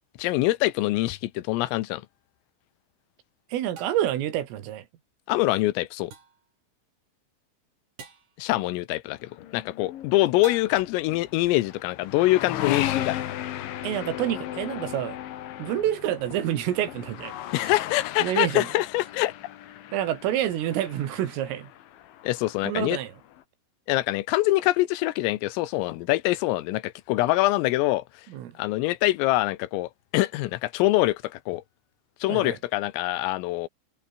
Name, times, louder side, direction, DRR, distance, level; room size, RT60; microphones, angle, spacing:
voice 1, 0.2-2.0 5.3-6.1 8.4-13.2 17.5-19.3 22.2-23.0 23.9-28.0 28.6-31.6 32.2-33.7, left 18 dB, 85° left, 3.7 m, -24 dB
sound 1, 1.7-1.8 3.8-4.3 6.1-6.5 8.0-8.4 10.4-11.1, right 6 dB, 40° right, 4.8 m, -45 dB
voice 2, 3.5-4.9 13.8-15.2 15.6-17.7 18.2-18.7 19.9-21.7 22.7-23.1 28.3-28.6 32.3-32.6, right 12 dB, 75° right, 4.8 m, -28 dB
sound 2, 9.1-23.4, left 12 dB, 70° left, 4.0 m, -36 dB
omnidirectional pair, 5.9 m